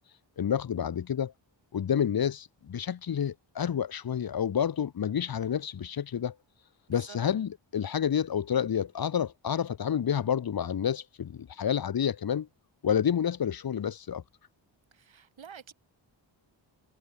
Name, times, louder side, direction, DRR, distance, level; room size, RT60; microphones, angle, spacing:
voice 1, 0.4-1.3 1.7-6.3 6.9-12.5 12.8-14.2, left 8 dB, 50° left, 0.9 m, -29 dB
voice 2, 14.9-15.7, right 7 dB, 75° right, 4.9 m, -48 dB
wide cardioid pair, 90°, 47 cm